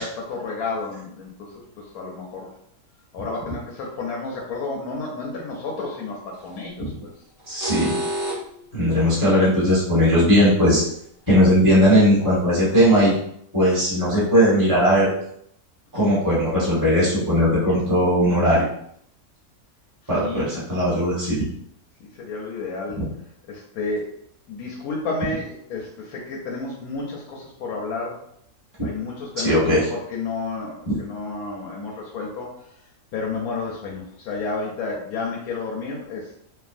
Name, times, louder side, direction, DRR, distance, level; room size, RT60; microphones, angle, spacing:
voice 1, 0.0-2.5 3.1-7.1 20.1-20.6 22.0-23.0 23.5-24.2 24.5-28.2 28.8-32.5 33.1-36.4, left 3 dB, 85° left, -2 dB, 1.1 m, -31 dB
sound 1, 6.3-6.6 7.4-8.6 11.3-11.4 12.2-12.3 12.6-12.7 13.1-13.2, right 1 dB, 60° right, 1.4 m, -29 dB
voice 2, 7.5-8.0 8.7-10.8 11.3-13.1 13.5-15.1 15.9-18.7 20.1-21.4 23.0-23.1 29.4-29.8 30.8-30.9, equal, 15° right, -8 dB, 1.2 m, -18 dB
3.3 x 2.1 x 2.5 m, 0.68 s
omnidirectional pair, 1.5 m